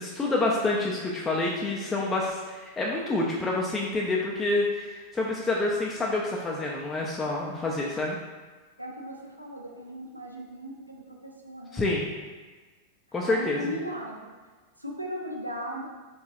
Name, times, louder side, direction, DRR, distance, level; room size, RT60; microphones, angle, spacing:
voice 1, 0.0-8.2 11.7-12.1 13.1-13.7, left 2 dB, 15° left, -3 dB, 0.4 m, -28 dB
voice 2, 8.8-11.8 13.3-14.3 14.8-15.9, equal, 85° right, 0 dB, 0.3 m, -37 dB
3.6 x 2.3 x 2.8 m, 1.3 s
figure-of-eight pair, 90°, 0 cm